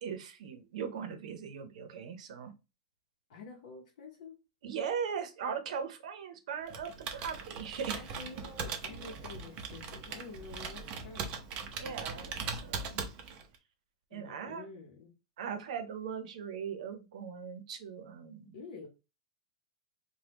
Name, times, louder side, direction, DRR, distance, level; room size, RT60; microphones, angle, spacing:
voice 1, 0.0-2.5 4.6-8.0 11.8-13.0 14.1-14.6 15.4-18.6, right 7 dB, 70° right, 8 dB, 0.7 m, -39 dB
voice 2, 3.3-4.4 7.9-11.5 14.1-15.1 18.5-18.9, left 4 dB, 60° left, -1 dB, 0.7 m, -48 dB
Computer keyboard, 6.7-13.5, right 5 dB, 35° right, 0.5 m, -40 dB
2.9 x 2.2 x 3.3 m, 0.27 s
supercardioid pair, 160°, 4 cm